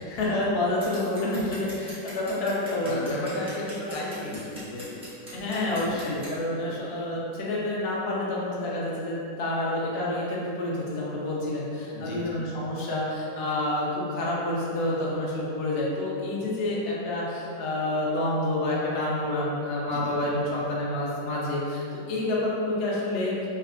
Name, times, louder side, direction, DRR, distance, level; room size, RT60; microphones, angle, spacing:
voice 1, 0.0-3.2 3.9-4.0 5.3-23.5, left 1 dB, 70° left, -5 dB, 0.6 m, -28 dB
Scissors, 0.8-6.3, equal, 5° right, 0.6 m, -43 dB
voice 2, 2.8-4.9 5.5-6.0 6.6-6.8 11.9-12.4 19.9-20.1, left 2 dB, 90° left, -3 dB, 1.3 m, -35 dB
3.3 x 2.2 x 3.6 m, 2.7 s
omnidirectional pair, 1.9 m